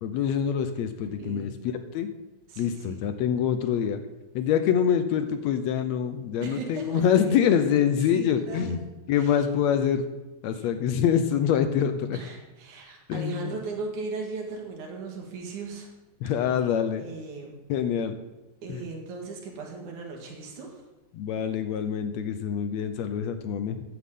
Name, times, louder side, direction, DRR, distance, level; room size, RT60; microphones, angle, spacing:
voice 1, 0.0-2.1 2.6-4.0 4.4-10.1 10.4-12.2 13.1-13.6 16.2-17.0 17.7-18.2 18.7-18.8 21.1-23.8, left 8 dB, 75° left, 9 dB, 1.8 m, -25 dB
voice 2, 1.0-1.5 2.5-3.0 6.4-7.9 8.1-8.8 9.1-9.3 10.5-10.7 12.1-15.9 17.0-17.6 18.6-20.8, right 4 dB, 90° right, 1 dB, 3.2 m, -38 dB
14.5 x 9.7 x 3.7 m, 1.1 s
omnidirectional pair, 3.3 m